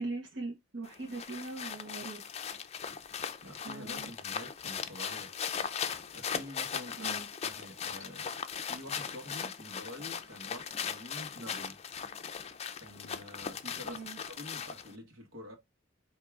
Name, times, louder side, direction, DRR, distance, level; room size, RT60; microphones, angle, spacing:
voice 1, 0.0-2.3 3.6-4.1 7.0-7.3 13.9-14.2, right 3 dB, 65° right, 1.2 m, -40 dB
sound 1, 0.9-15.0, left 7 dB, 35° left, 0.4 m, -39 dB
voice 2, 3.4-5.3 6.1-8.3 8.7-11.8 12.8-15.6, left 1 dB, 85° right, 1.4 m, -47 dB
4.6 x 2.8 x 3.6 m
head